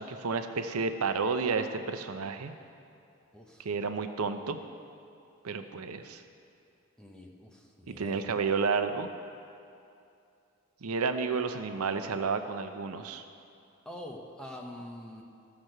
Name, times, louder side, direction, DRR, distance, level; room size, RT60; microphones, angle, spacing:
voice 1, 0.0-2.5 3.6-4.6 5.4-6.2 7.9-9.1 10.8-13.2, right 5 dB, 85° right, 8 dB, 0.6 m, -31 dB
voice 2, 3.3-3.7 7.0-8.2 13.8-15.2, left 1 dB, 5° left, 0 dB, 0.9 m, -45 dB
14.5 x 6.0 x 6.6 m, 2.6 s
head